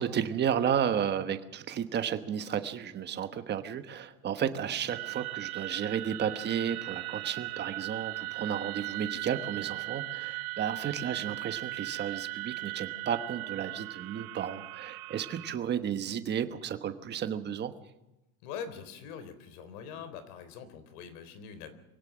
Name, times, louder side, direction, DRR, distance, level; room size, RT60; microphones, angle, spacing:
voice 1, 0.0-17.7, right 8 dB, 25° right, 9 dB, 1.2 m, -33 dB
sound 1, 4.9-15.6, right 21 dB, 85° right, 1.4 m, -38 dB
voice 2, 18.4-21.7, left 7 dB, 85° left, 11 dB, 3.8 m, -43 dB
24.5 x 17.0 x 6.2 m, 0.98 s
cardioid pair, 165°, 43 cm